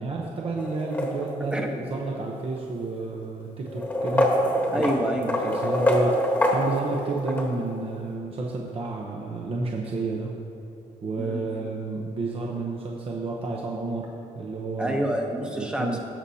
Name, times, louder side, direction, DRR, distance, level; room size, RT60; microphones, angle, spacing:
voice 1, 0.0-4.4 4.7-4.8 5.3-10.3 11.0-14.1 14.3-15.0 15.4-16.0, right 3 dB, 40° right, -1 dB, 0.8 m, -30 dB
sound 1, 0.6-1.6 2.6-2.7 3.7-7.5, left 1 dB, 10° left, 1.2 m, -25 dB
voice 2, 4.7-5.4 11.2-11.4 14.8-16.0, equal, 5° right, 2 dB, 0.9 m, -27 dB
17.5 x 6.9 x 2.8 m, 2.7 s
cardioid pair, 150°, 15 cm